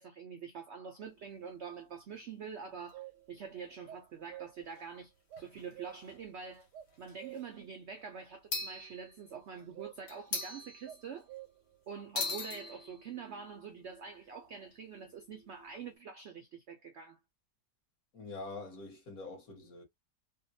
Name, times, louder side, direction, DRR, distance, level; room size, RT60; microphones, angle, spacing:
voice 1, 0.0-6.7 7.0-11.3 11.9-17.2, right 6 dB, 70° right, 0.6 m, -46 dB
sound 1, 1.0-2.1 2.9-3.0 3.2-3.3 4.8-4.9 5.4-5.7 6.1-6.2 6.9-7.4 8.5-9.6 10.1-11.4 12.2-15.9, left 3 dB, 90° left, 1.8 m, -42 dB
sound 2, 2.8-3.5 3.9-4.8 5.3-6.2 6.7-7.7 9.3-10.3 10.8-11.8, right 13 dB, 90° right, 1.2 m, -49 dB
voice 2, 18.1-19.8, left 3 dB, 60° left, 1.7 m, -45 dB
3.6 x 2.2 x 2.6 m
omnidirectional pair, 1.8 m